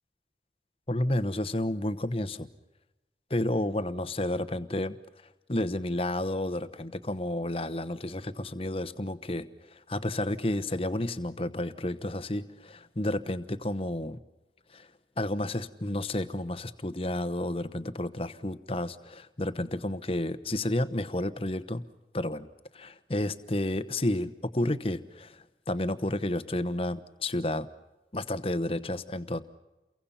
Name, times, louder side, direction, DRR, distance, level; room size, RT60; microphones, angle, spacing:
voice 1, 0.9-2.5 3.3-5.0 5.5-14.2 14.7-14.9 15.2-21.8 22.1-22.5 22.7-27.7 28.1-29.4, left 1 dB, 30° left, 13 dB, 1.0 m, -31 dB
30.0 x 23.0 x 5.8 m, 1.0 s
head